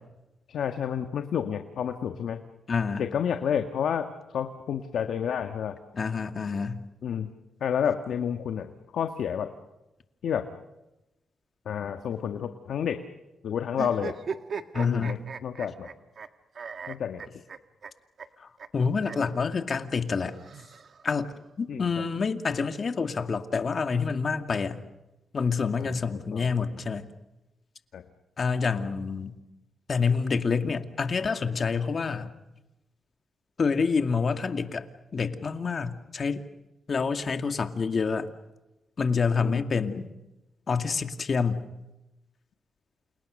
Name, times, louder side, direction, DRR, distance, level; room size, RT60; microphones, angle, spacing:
voice 1, 0.5-2.4 3.0-5.8 7.0-7.3 7.6-9.5 10.2-10.5 11.6-13.0 13.4-14.2 14.8-15.9 16.9-17.2 21.7-21.9 25.8-26.0 26.3-26.8 27.9-28.0 39.4-39.6, left 8 dB, 75° left, 7 dB, 1.6 m, -30 dB
voice 2, 2.7-3.0 5.9-6.8 14.7-15.2 18.4-20.3 21.0-21.3 21.6-24.8 25.3-27.1 28.4-29.4 29.9-32.3 33.6-34.9 35.1-36.4 36.9-38.3 39.0-40.1 40.7-41.6, left 5 dB, 50° left, 8 dB, 2.3 m, -27 dB
sound 1, 13.7-16.3 16.6-17.9 18.2-18.3 18.6-18.7 19.0-19.2 20.2-21.2, right 6 dB, 55° right, 1.5 m, -38 dB
29.5 x 28.5 x 6.6 m, 0.98 s
cardioid pair, 85°, 0 cm